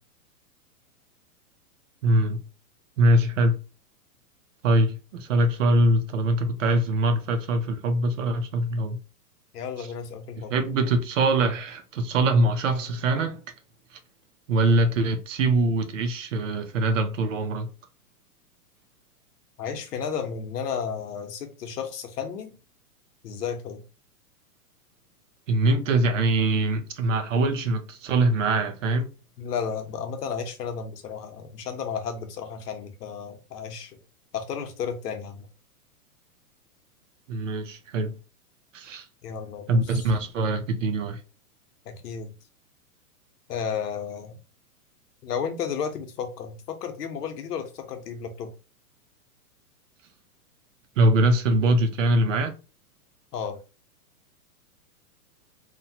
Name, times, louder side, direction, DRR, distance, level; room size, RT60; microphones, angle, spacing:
voice 1, 2.0-2.4 3.0-3.6 4.6-9.0 9.8-9.9 10.5-13.4 13.9-14.0 14.5-17.7 25.5-29.1 37.3-38.1 38.7-39.1 39.7-41.2 51.0-52.6, right 2 dB, 55° right, 0.6 m, -23 dB
voice 2, 9.5-10.5 19.6-22.6 23.2-23.8 29.4-34.0 34.3-35.5 39.2-40.1 41.8-42.3 43.5-44.4 45.2-48.5 53.3-53.6, left 6 dB, 85° left, 0.9 m, -33 dB
2.9 x 2.2 x 2.8 m
supercardioid pair, 175°, 46 cm